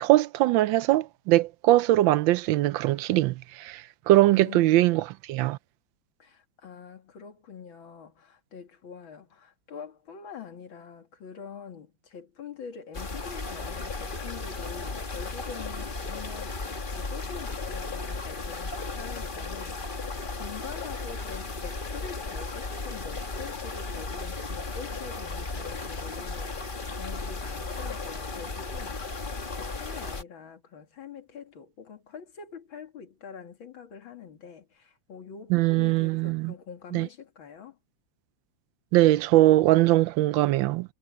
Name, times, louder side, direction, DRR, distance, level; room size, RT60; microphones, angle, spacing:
voice 1, 0.0-5.6 35.5-36.5 36.9-37.1 38.9-40.9, right 16 dB, 80° right, 1.3 m, -21 dB
voice 2, 4.3-4.7 6.2-37.8, left 6 dB, 80° left, 2.8 m, -45 dB
sound 1, 12.9-30.2, left 3 dB, 30° left, 1.5 m, -35 dB
omnidirectional pair, 2.1 m